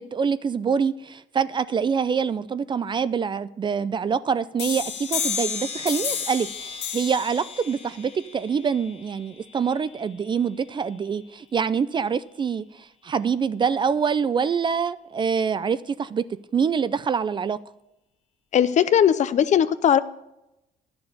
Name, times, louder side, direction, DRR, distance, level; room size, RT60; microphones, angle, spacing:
voice 1, 0.0-16.2 16.5-17.6, right 6 dB, 30° right, 0.4 m, -25 dB
sound 1, 4.6-10.0, left 7 dB, 75° left, 2.0 m, -32 dB
voice 2, 18.5-20.0, left 9 dB, 45° left, 0.6 m, -19 dB
11.0 x 6.9 x 6.6 m
cardioid pair, 110°, 17 cm